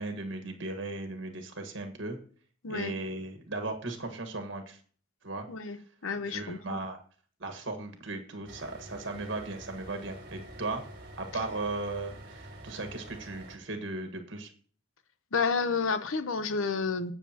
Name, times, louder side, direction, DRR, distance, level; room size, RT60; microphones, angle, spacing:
voice 1, 0.0-2.2 2.7-4.8 5.2-5.5 6.3-7.0 7.4-10.8 11.2-14.5, right 2 dB, 65° right, 1.6 m, -37 dB
voice 2, 2.6-2.9 5.5-6.8 15.3-17.1, left 4 dB, 80° left, 0.9 m, -30 dB
sound 1, 8.5-13.6, right 1 dB, 45° right, 2.1 m, -47 dB
17.5 x 6.8 x 2.9 m
head